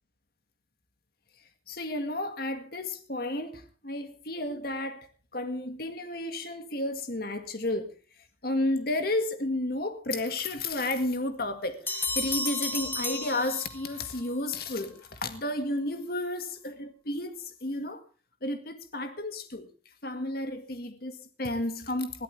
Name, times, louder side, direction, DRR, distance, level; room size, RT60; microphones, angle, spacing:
voice 1, 1.7-5.1 5.3-8.0 8.4-18.0 18.4-19.7 20.0-22.2, left 1 dB, 55° left, 1.9 m, -32 dB
sound 1, 11.9-14.1, left 3 dB, 10° left, 1.8 m, -32 dB
21.0 x 13.5 x 3.4 m
head